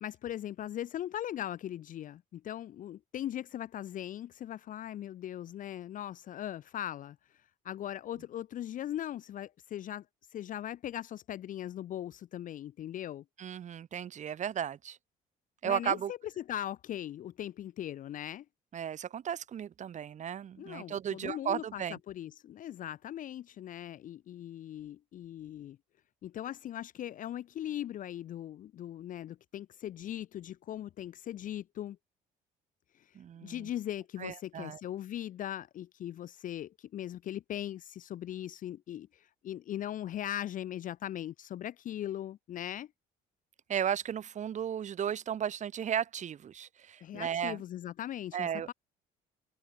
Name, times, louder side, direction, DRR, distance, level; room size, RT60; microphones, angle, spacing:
voice 1, 0.0-10.1 10.3-13.2 15.6-18.5 20.6-25.8 26.2-32.0 32.9-42.9 47.0-48.7, left 11 dB, 50° left, 0.6 m, -39 dB
voice 2, 13.4-15.0 15.6-16.1 18.7-22.0 33.1-33.7 34.2-34.8 43.7-47.6 48.3-48.7, right 9 dB, 45° right, 1.4 m, -35 dB
cardioid pair, 110°, 17 cm